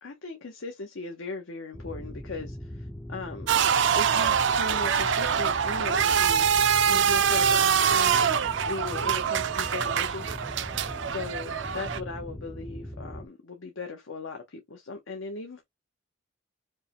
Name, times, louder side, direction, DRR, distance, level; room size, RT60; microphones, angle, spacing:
voice 1, 0.0-3.5 3.9-8.3 8.7-10.3 11.1-15.6, left 3 dB, 75° left, 0.8 m, -38 dB
sound 1, 1.7-13.3, left 1 dB, 10° left, 0.3 m, -40 dB
sound 2, 3.5-12.0, right 7 dB, 65° right, 0.4 m, -24 dB
5.3 x 2.1 x 2.8 m
head